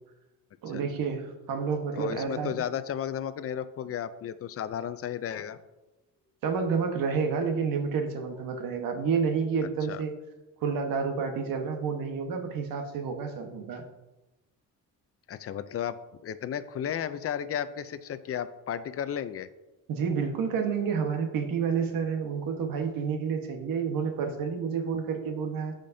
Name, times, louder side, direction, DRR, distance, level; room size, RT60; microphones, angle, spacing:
voice 1, 0.6-2.6 6.4-10.1 10.6-13.8 19.9-25.7, right 6 dB, 75° right, 5 dB, 1.3 m, -29 dB
voice 2, 1.9-5.6 9.9-10.0 15.3-16.0 16.2-19.5, left 9 dB, 40° left, 13 dB, 0.5 m, -33 dB
14.5 x 5.1 x 2.7 m, 1.0 s
cardioid pair, 130°, 34 cm